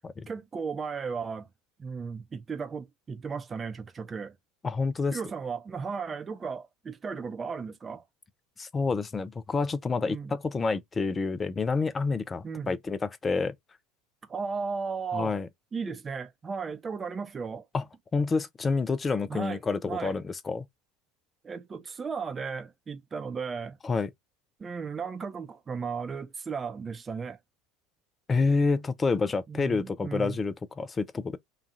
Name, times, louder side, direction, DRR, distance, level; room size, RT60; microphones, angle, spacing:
voice 1, 0.3-1.5 1.8-4.4 5.1-8.0 10.0-10.3 12.4-12.8 14.2-15.4 15.7-17.6 19.3-19.6 19.8-20.1 21.4-23.8 24.6-27.4 29.5-30.4, right 5 dB, 25° right, 0.7 m, -35 dB
voice 2, 4.6-5.2 8.6-13.5 15.1-15.5 17.7-17.8 18.1-20.6 23.8-24.1 28.3-31.4, left 4 dB, 25° left, 0.4 m, -28 dB
2.9 x 2.3 x 2.6 m
hypercardioid pair, 75°, 0 cm